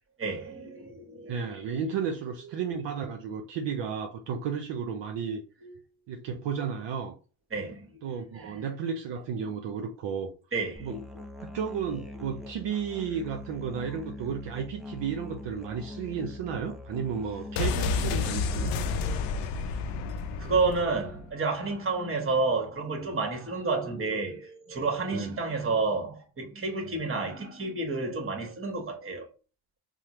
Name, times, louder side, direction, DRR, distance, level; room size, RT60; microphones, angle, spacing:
voice 1, 0.2-1.9 5.6-5.7 7.5-7.9 8.3-8.6 10.5-11.0 19.0-19.2 20.4-29.3, right 3 dB, 25° right, 1.1 m, -30 dB
voice 2, 1.3-5.4 6.1-7.1 8.0-10.3 10.8-11.0 11.5-18.8 25.1-25.3 26.8-26.9, right 7 dB, 60° right, 0.6 m, -33 dB
Musical instrument, 10.8-18.7, left 1 dB, ahead, 0.4 m, -43 dB
sound 1, 17.6-21.3 21.6-21.7, left 4 dB, 90° left, 0.6 m, -30 dB
3.2 x 2.0 x 2.9 m
supercardioid pair, 80°, 50 cm